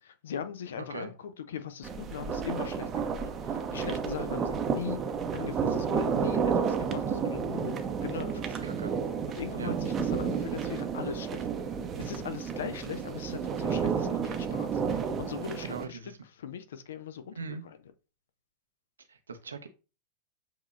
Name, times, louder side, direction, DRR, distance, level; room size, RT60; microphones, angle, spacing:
voice 1, 0.0-5.0 5.3-8.4 9.3-11.5 12.0-17.8, left 8 dB, 60° left, 0.5 m, -40 dB
voice 2, 0.8-1.1 8.6-8.9 9.6-9.7 15.6-16.2 17.4-17.6 19.1-19.7, right 5 dB, 70° right, 0.6 m, -40 dB
sound 1, 1.8-15.8, right 6 dB, 25° right, 0.6 m, -31 dB
7.2 x 2.9 x 2.4 m
figure-of-eight pair, 90°, 0 cm